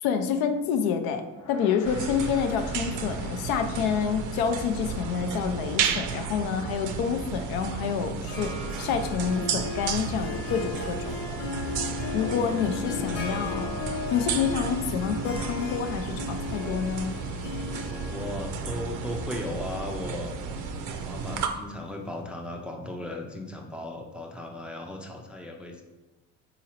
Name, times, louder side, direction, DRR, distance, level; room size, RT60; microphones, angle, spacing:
voice 1, 0.0-11.4 12.1-13.7 14.1-17.2, left 7 dB, 70° left, 7 dB, 0.5 m, -28 dB
Gong, 1.3-10.9, left 3 dB, 45° left, 0.8 m, -53 dB
sound 1, 1.8-21.5, right 6 dB, 55° right, 0.5 m, -33 dB
Harp, 8.3-21.8, left 5 dB, 85° left, 0.9 m, -37 dB
voice 2, 12.0-13.4 18.0-20.7 20.9-25.8, left 1 dB, 5° right, 1 dB, 0.4 m, -37 dB
3.9 x 2.8 x 2.8 m, 1.1 s
hypercardioid pair, 65°, 38 cm